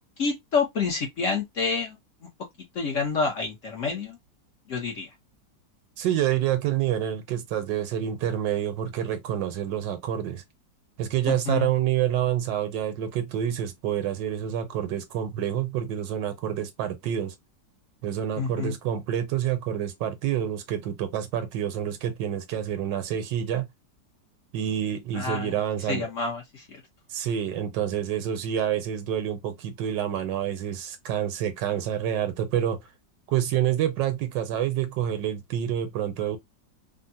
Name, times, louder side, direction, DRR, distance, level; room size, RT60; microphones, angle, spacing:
voice 1, 0.2-2.0 2.7-4.2 4.7-5.1 11.3-11.7 18.4-18.8 25.1-25.6 25.9-26.8, left 5 dB, 55° left, 0.9 m, -28 dB
voice 2, 6.0-10.4 11.0-17.3 18.0-23.7 24.5-26.1 27.1-32.8 33.3-36.4, right 10 dB, 80° right, 1.3 m, -28 dB
3.5 x 2.0 x 2.6 m
omnidirectional pair, 2.0 m